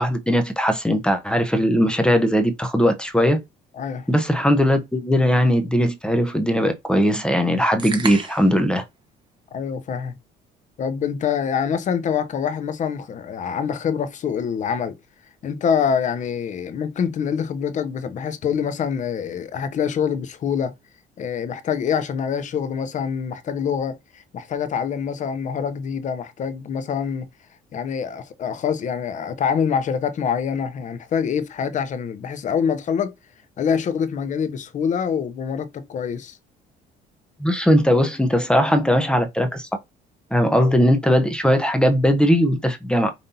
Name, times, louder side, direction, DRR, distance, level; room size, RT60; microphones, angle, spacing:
voice 1, 0.0-3.4 4.1-8.8 37.4-39.7 40.3-43.1, equal, 5° left, 0.7 m, -19 dB
voice 2, 3.7-4.1 9.5-10.1 10.8-15.0 15.4-20.7 21.2-27.3 27.7-33.1 33.6-36.4, left 7 dB, 45° left, 0.7 m, -25 dB
sound 1, 7.8-8.6, right 4 dB, 25° right, 1.0 m, -31 dB
5.3 x 2.6 x 2.7 m
cardioid pair, 110°, 17 cm